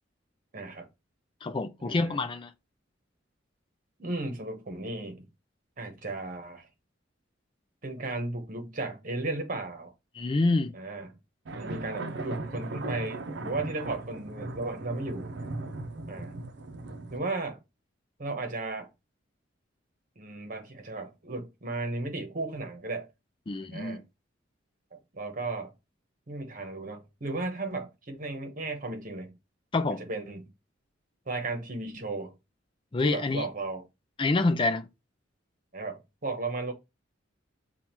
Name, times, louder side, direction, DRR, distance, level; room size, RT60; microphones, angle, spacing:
voice 1, 0.5-0.9 1.8-2.2 4.0-5.3 5.8-6.7 7.8-9.9 10.7-11.2 11.5-15.4 16.1-16.3 17.1-17.6 18.2-18.9 20.2-23.1 23.7-24.0 24.9-25.7 26.3-29.3 29.9-30.5 31.3-32.3 33.0-33.8 35.7-36.7, right 2 dB, 45° right, 1.1 m, -35 dB
voice 2, 1.4-2.5 10.2-10.7 23.5-24.0 29.7-30.0 32.9-33.5 34.2-34.9, left 3 dB, 25° left, 0.4 m, -27 dB
sound 1, 11.5-17.2, right 2 dB, 65° right, 0.6 m, -38 dB
7.0 x 2.4 x 2.9 m
head